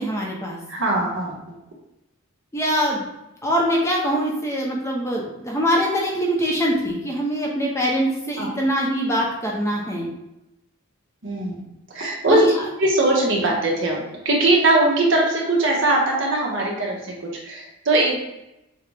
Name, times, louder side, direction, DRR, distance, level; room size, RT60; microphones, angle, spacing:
voice 1, 0.0-0.6 2.5-3.0 3.4-10.1 12.3-12.5, equal, 15° left, -3 dB, 0.8 m, -23 dB
voice 2, 0.7-1.6 8.4-8.5 11.2-12.5 12.8-18.2, right 2 dB, 60° right, -2 dB, 1.2 m, -21 dB
6.6 x 2.3 x 3.5 m, 0.90 s
head